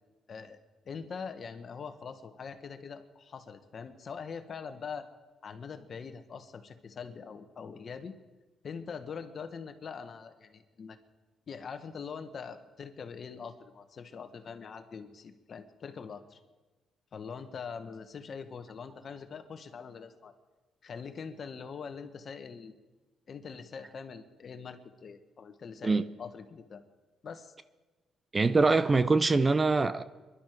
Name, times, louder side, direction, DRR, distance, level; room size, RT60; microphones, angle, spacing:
voice 1, 0.8-5.1 5.4-8.1 8.6-11.0 11.5-16.4 17.1-20.3 20.8-22.8 23.3-26.8 27.2-27.5, left 6 dB, 50° left, 1.4 m, -43 dB
voice 2, 28.3-30.0, right 3 dB, 25° right, 0.6 m, -24 dB
23.0 x 11.5 x 4.6 m
cardioid pair, 90°, 0 cm